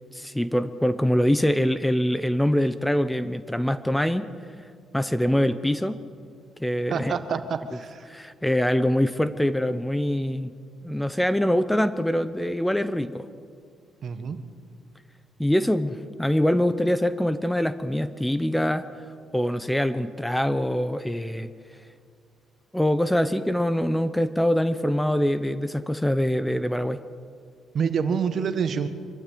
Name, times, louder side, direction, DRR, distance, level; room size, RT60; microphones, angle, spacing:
voice 1, 0.1-4.3 4.9-6.0 6.6-7.2 8.1-10.5 10.8-13.3 15.4-18.9 19.3-21.5 22.7-27.0, equal, 5° left, 12 dB, 0.8 m, -24 dB
voice 2, 6.9-8.1 14.0-14.4 27.7-28.9, right 6 dB, 55° right, 10 dB, 1.5 m, -27 dB
25.0 x 12.5 x 8.5 m, 2.1 s
cardioid pair, 90°, 0 cm